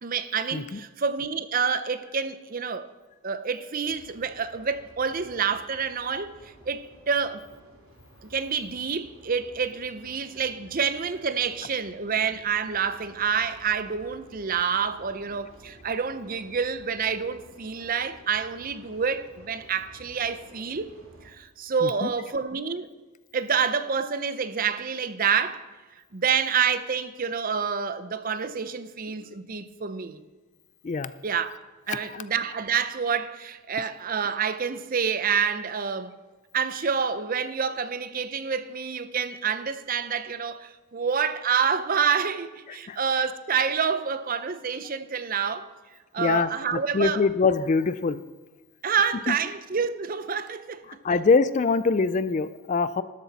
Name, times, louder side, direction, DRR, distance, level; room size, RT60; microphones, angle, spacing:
voice 1, 0.0-2.9 3.2-7.4 8.2-20.9 21.2-22.9 23.3-25.6 26.1-30.2 31.2-31.5 31.9-36.2 36.5-45.7 46.1-47.2 48.8-50.8, right 6 dB, 40° right, 0.6 m, -28 dB
sound 1, 3.8-21.3, right 1 dB, 70° right, 2.9 m, -53 dB
voice 2, 31.9-32.2 33.8-33.9 42.7-43.0 46.2-48.2 49.3-49.4 51.0-53.0, left 4 dB, 35° left, 0.4 m, -24 dB
13.0 x 11.5 x 4.2 m
head